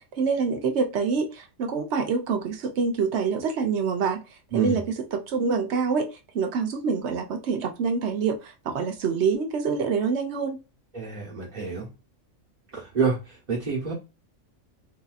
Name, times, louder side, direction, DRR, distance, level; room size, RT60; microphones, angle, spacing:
voice 1, 0.2-4.2 4.5-4.8 5.1-6.1 6.3-10.6, right 5 dB, 60° right, 0.9 m, -26 dB
voice 2, 4.5-4.8 10.9-11.9 12.7-13.9, right 5 dB, 35° right, 1.1 m, -28 dB
3.9 x 2.7 x 2.4 m
omnidirectional pair, 1.4 m